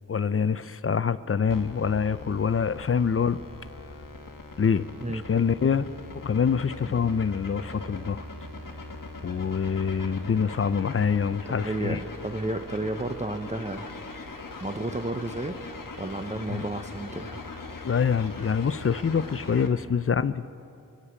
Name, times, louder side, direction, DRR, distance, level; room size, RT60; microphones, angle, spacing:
voice 1, 0.1-3.4 4.6-5.9 6.2-8.2 9.2-12.0 16.5-16.6 17.8-20.4, left 6 dB, 40° left, 15 dB, 0.5 m, -25 dB
sound 1, 1.5-19.7, left 3 dB, 70° left, 1.4 m, -41 dB
voice 2, 11.5-13.9 14.6-15.6 16.0-17.3, right 2 dB, 20° right, 6 dB, 0.7 m, -32 dB
26.5 x 8.9 x 5.0 m, 2.6 s
wide cardioid pair, 65°, 34 cm